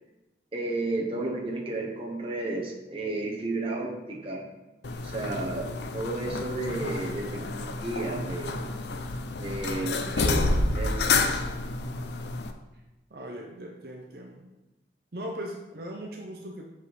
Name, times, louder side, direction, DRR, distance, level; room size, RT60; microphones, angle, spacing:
voice 1, 0.5-4.4 5.0-8.7 9.4-11.2, right 2 dB, 30° right, -1 dB, 1.0 m, -32 dB
sound 1, 4.8-12.5, left 3 dB, 75° left, 0.6 m, -29 dB
voice 2, 13.1-14.4 15.1-16.7, equal, 60° right, 1 dB, 0.7 m, -39 dB
7.3 x 4.8 x 4.2 m, 1.0 s
head